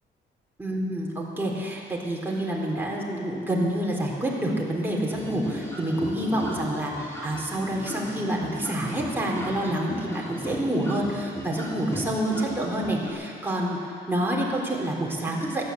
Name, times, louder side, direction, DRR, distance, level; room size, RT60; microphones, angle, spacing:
voice 1, 0.6-15.6, right 1 dB, 10° right, -3 dB, 3.8 m, -28 dB
sound 1, 5.1-13.1, equal, 15° left, 3.5 m, -36 dB
14.5 x 11.0 x 7.9 m, 2.3 s
cardioid pair, 90°, 20 cm